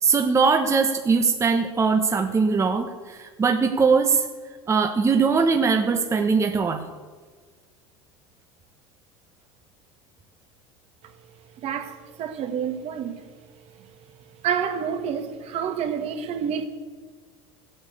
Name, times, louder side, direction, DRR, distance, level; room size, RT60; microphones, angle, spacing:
voice 1, 0.0-4.3 4.7-6.8, right 5 dB, 20° right, 1.1 m, -21 dB
voice 2, 11.6-13.2 14.4-16.7, right 7 dB, 50° right, 1.9 m, -28 dB
15.5 x 8.8 x 8.1 m
supercardioid pair, 110°, 13 cm